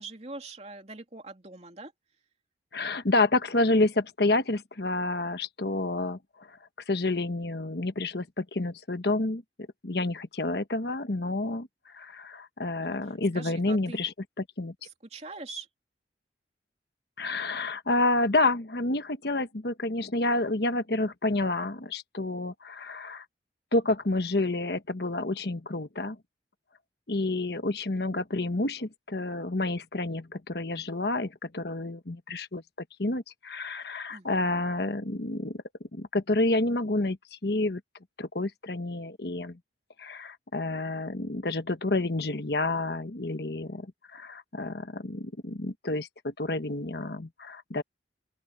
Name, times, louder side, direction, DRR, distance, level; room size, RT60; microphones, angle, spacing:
voice 1, 0.0-1.9 12.8-13.0 13.3-14.0 14.8-15.7 34.1-34.6, right 3 dB, 35° right, 2.9 m, -43 dB
voice 2, 2.7-6.6 6.9-9.4 9.8-14.7 17.2-23.2 23.7-26.2 27.1-32.6 33.0-35.6 35.9-37.2 37.4-37.8 38.2-39.6 40.0-43.9 44.1-47.8, left 2 dB, 60° left, 1.2 m, -29 dB
open air
head